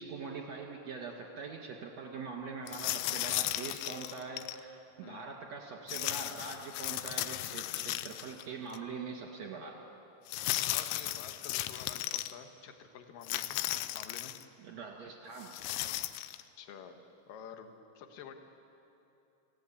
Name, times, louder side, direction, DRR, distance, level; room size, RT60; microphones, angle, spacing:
voice 1, 0.0-9.8 14.6-15.5, right 4 dB, 55° right, 0 dB, 2.0 m, -43 dB
sound 1, 2.7-4.6 5.9-8.4 8.7-8.8 10.3-12.3 13.2-14.4 15.4-16.4, left 15 dB, 85° left, 3.4 m, -35 dB
voice 2, 10.5-13.6 13.9-14.3 16.6-17.0 17.3-18.3, left 7 dB, 65° left, 6 dB, 2.3 m, -49 dB
29.0 x 16.5 x 8.7 m, 2.8 s
omnidirectional pair, 5.8 m